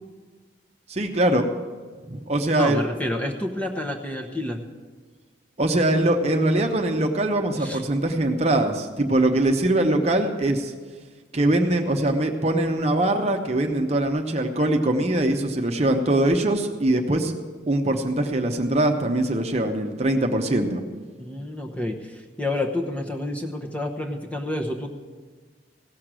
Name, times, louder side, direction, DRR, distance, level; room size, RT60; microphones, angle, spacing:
voice 1, 0.9-1.5 2.1-2.8 5.6-10.7 11.3-17.3 17.7-20.8, right 1 dB, 35° right, 4 dB, 0.9 m, -22 dB
voice 2, 2.5-4.6 7.6-7.8 21.2-24.9, left 1 dB, 5° left, 1 dB, 0.9 m, -29 dB
17.0 x 6.5 x 7.5 m, 1.5 s
head